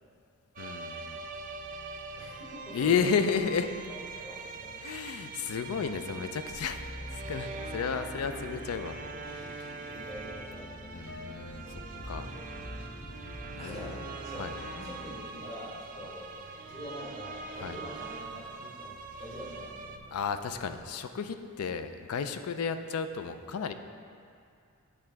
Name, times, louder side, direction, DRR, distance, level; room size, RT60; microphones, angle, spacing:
voice 1, 0.6-1.2 2.7-3.7 4.8-6.8 7.1-9.0 9.3-9.8 10.9-12.3 13.6-14.0 14.4-14.5 17.6-17.8 20.1-23.7, left 6 dB, 75° left, 9 dB, 0.4 m, -32 dB
sound 1, 0.6-20.0, right 4 dB, 40° right, 0.3 m, -43 dB
sound 2, 1.0-20.9, right 3 dB, 90° right, 0.5 m, -56 dB
voice 2, 2.2-3.1 4.1-4.8 9.8-10.9 13.6-14.0 14.2-14.5 14.7-16.4 16.6-19.8, equal, 30° left, -6 dB, 1.5 m, -44 dB
sound 3, 6.5-15.2, left 1 dB, 60° left, 0.8 m, -44 dB
8.8 x 3.6 x 4.5 m, 2.3 s
head